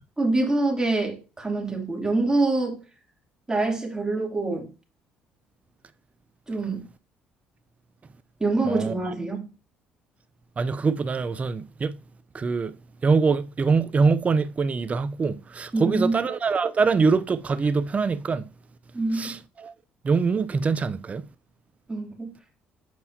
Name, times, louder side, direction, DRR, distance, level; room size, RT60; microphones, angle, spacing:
voice 1, 0.2-2.8 3.5-4.7 6.5-6.8 8.4-9.5 15.7-16.1 18.9-19.3 21.9-22.3, right 2 dB, 15° right, 2.8 m, -25 dB
voice 2, 10.6-12.0 12.3-12.7 13.0-18.5 19.1-19.7 20.0-21.2, right 4 dB, 30° right, 0.5 m, -24 dB
7.6 x 5.4 x 2.7 m
hypercardioid pair, 65°, 4 cm